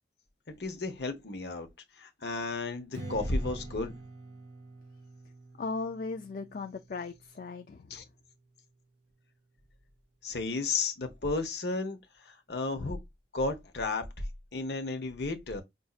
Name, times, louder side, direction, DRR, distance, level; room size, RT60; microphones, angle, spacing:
voice 1, 0.6-1.7 2.0-4.0 7.9-8.0 10.2-13.0 13.3-14.3 14.5-15.6, left 3 dB, 65° left, 1.0 m, -33 dB
Strum, 2.9-8.2, right 2 dB, 80° right, 2.1 m, -47 dB
voice 2, 5.6-8.0, left 4 dB, 50° left, 0.4 m, -37 dB
5.5 x 2.7 x 2.4 m
head